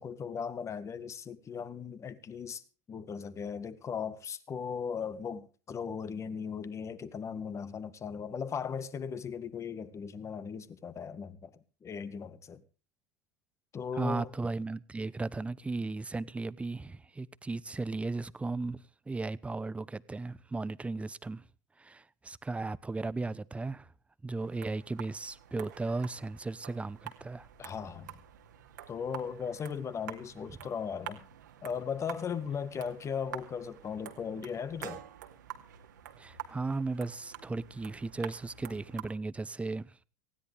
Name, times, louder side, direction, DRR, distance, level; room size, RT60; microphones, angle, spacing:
voice 1, 0.0-2.6 2.9-11.5 11.8-12.6 13.7-14.3 27.6-28.1 28.9-31.2 31.6-35.0, left 6 dB, 30° left, 1.8 m, -37 dB
voice 2, 13.9-21.4 21.8-23.9 24.2-27.5 36.2-40.0, right 3 dB, 15° right, 0.9 m, -36 dB
sound 1, 24.4-39.0, right 10 dB, 85° right, 2.4 m, -48 dB
19.0 x 16.5 x 3.4 m
hypercardioid pair, 85°, 10 cm